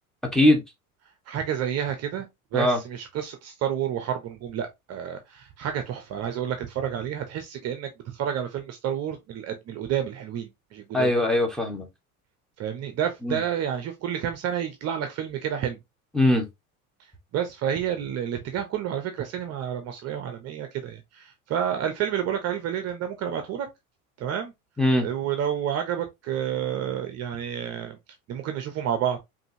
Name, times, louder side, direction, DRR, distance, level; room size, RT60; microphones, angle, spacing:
voice 1, 1.3-11.1 12.6-15.8 17.3-23.7 24.2-24.5 25.0-28.0 28.3-29.2, right 9 dB, 35° right, 0.8 m, -30 dB
voice 2, 10.9-11.9 13.2-13.4 16.1-16.5 24.8-25.1, left 1 dB, ahead, 1.3 m, -21 dB
5.2 x 2.7 x 2.7 m
figure-of-eight pair, 75°, 44 cm